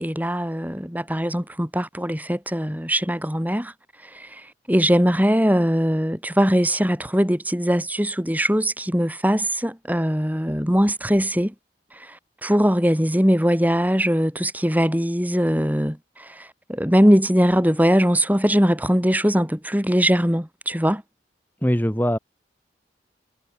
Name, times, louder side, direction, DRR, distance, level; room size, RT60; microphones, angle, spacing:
voice 1, 0.0-3.7 4.0-11.5 11.9-21.0, equal, 10° right, 6.2 m, -21 dB
voice 2, 21.6-22.2, equal, 10° left, 4.7 m, -21 dB
head